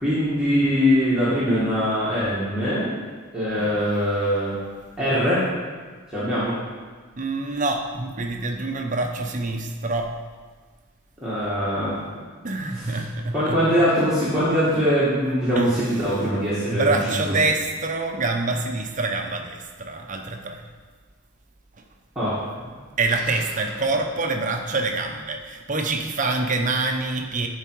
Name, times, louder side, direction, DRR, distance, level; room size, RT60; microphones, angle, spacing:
voice 1, 0.0-2.9 3.3-4.6 5.0-5.4 6.1-6.6 11.2-12.0 12.7-13.0 13.3-17.4 22.1-22.5, equal, 5° right, -11 dB, 1.5 m, -22 dB
voice 2, 7.2-10.1 12.4-13.6 15.6-15.8 16.7-20.6 23.0-27.5, right 3 dB, 35° right, 4 dB, 0.7 m, -26 dB
10.5 x 4.7 x 4.6 m, 1.5 s
head